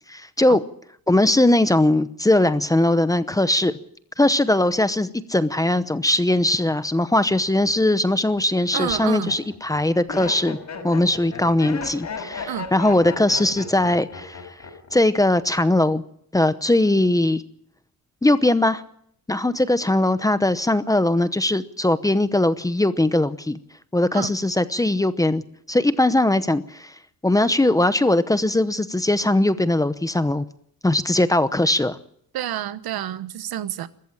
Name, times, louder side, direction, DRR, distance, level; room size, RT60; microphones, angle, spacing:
voice 1, 0.1-0.6 1.1-3.8 4.2-10.6 10.8-14.4 14.9-16.0 16.3-17.4 18.2-18.8 19.3-23.6 23.9-25.4 25.7-26.9 27.2-30.4 30.8-32.0, left 1 dB, 10° left, 0.8 m, -20 dB
Laughter, 7.3-7.7 8.4-15.0 15.2-15.8, left 5 dB, 45° left, 5.7 m, -35 dB
voice 2, 8.7-9.4 12.5-12.7 24.1-24.4 32.3-33.9, right 11 dB, 80° right, 1.3 m, -29 dB
22.0 x 14.5 x 8.8 m
cardioid pair, 150°, 36 cm